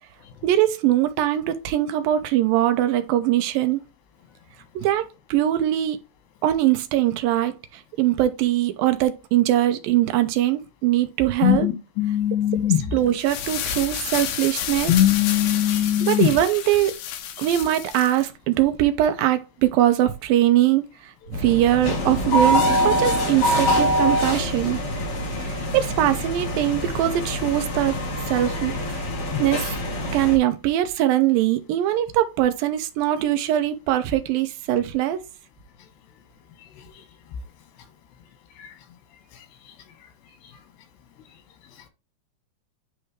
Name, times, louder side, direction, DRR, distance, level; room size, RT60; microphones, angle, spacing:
voice 1, 0.4-3.8 4.8-6.0 6.4-7.6 8.0-11.7 12.9-14.9 16.0-16.9 17.4-20.8 21.3-24.8 25.4-28.0 28.3-29.1 29.4-29.7 30.1-35.2, right 13 dB, 75° right, 2.3 m, -21 dB
voice 2, 11.4-13.0 14.9-16.3 29.3-29.4, left 11 dB, 90° left, 3.7 m, -20 dB
sound 1, 13.1-18.2, left 9 dB, 75° left, 2.6 m, -31 dB
sound 2, 21.3-30.4, equal, 45° left, 2.4 m, -24 dB
9.7 x 3.4 x 3.1 m
omnidirectional pair, 4.7 m